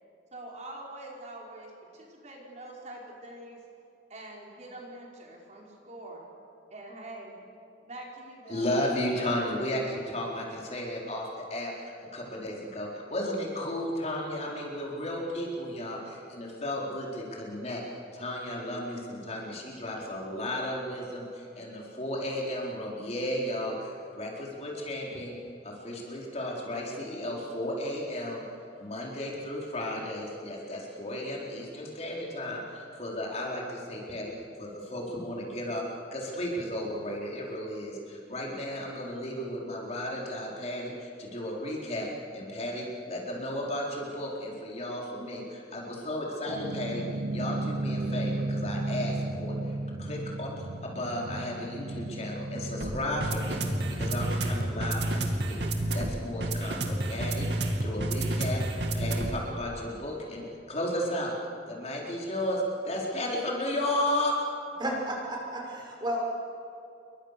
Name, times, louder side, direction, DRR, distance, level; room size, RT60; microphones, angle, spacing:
voice 1, 0.3-3.6 4.1-6.2 6.7-7.3 7.8-8.8, right 1 dB, 40° right, -1 dB, 4.5 m, -44 dB
voice 2, 8.5-17.8 18.1-25.3 25.6-28.4 28.8-34.3 34.6-35.8 36.1-47.0 47.3-50.5 50.8-53.6 53.9-55.6 55.9-58.6 58.9-61.3 61.7-64.4, left 1 dB, 40° left, -2 dB, 4.3 m, -34 dB
sound 1, 46.5-59.5, right 1 dB, 75° right, 2.6 m, -31 dB
voice 3, 64.8-66.3, right 1 dB, 25° right, -1 dB, 6.1 m, -32 dB
29.0 x 23.0 x 6.8 m, 2.5 s
head